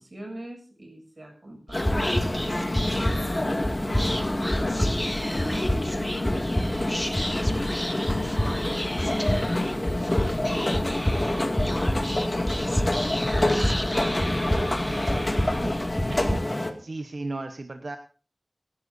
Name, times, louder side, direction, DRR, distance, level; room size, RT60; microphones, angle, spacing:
voice 1, 0.0-4.2 4.8-5.7 6.0-8.2 8.7-16.1, right 1 dB, 60° right, 2 dB, 7.2 m, -43 dB
sound 1, 1.7-16.7, left 1 dB, 40° left, 2.2 m, -28 dB
Whispering, 1.7-16.3, equal, 10° left, 1.7 m, -29 dB
voice 2, 16.1-18.0, right 2 dB, 90° right, 5 dB, 1.0 m, -35 dB
25.5 x 12.0 x 2.7 m, 0.38 s
wide cardioid pair, 50°, 0 cm